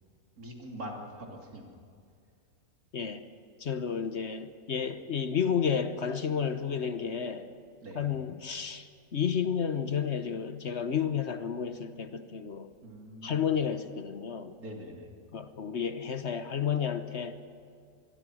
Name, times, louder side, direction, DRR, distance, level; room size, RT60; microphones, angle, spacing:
voice 1, 0.4-1.6 7.8-8.1 12.8-13.5 14.6-15.1, equal, 85° right, 0 dB, 3.6 m, -43 dB
voice 2, 2.9-3.2 3.6-7.5 8.0-12.7 13.2-14.5 15.3-17.4, left 7 dB, 55° left, 10 dB, 1.2 m, -31 dB
25.5 x 20.5 x 6.3 m, 2.4 s
omnidirectional pair, 1.5 m